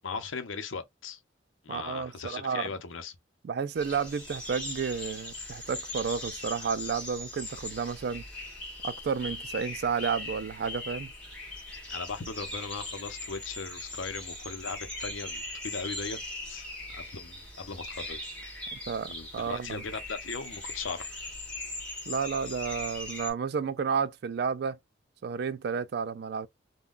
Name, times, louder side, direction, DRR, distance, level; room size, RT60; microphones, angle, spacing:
voice 1, 0.0-1.2 1.6-3.1 11.9-16.2 16.5-18.2 19.1-21.3, left 4 dB, 85° left, 0.7 m, -38 dB
voice 2, 1.7-2.7 3.4-8.2 8.8-11.1 18.7-19.8 22.1-24.8 25.2-26.5, right 6 dB, 55° right, 0.3 m, -31 dB
sound 1, 3.7-23.3, left 2 dB, 5° left, 1.6 m, -40 dB
3.6 x 2.2 x 2.3 m
head